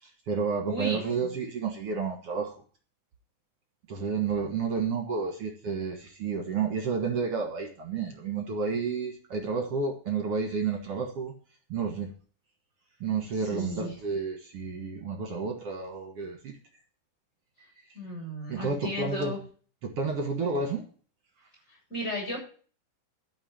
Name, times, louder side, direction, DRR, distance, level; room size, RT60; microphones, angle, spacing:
voice 1, 0.0-2.5 3.9-11.3 11.7-12.1 13.0-16.6 17.6-17.9 18.5-19.4 19.8-20.8, right 5 dB, 50° right, 3 dB, 2.2 m, -31 dB
voice 2, 0.6-1.0 13.4-13.9 17.9-19.4 21.9-22.4, left 1 dB, 15° left, -2 dB, 7.6 m, -34 dB
12.5 x 6.1 x 8.7 m, 0.41 s
omnidirectional pair, 4.1 m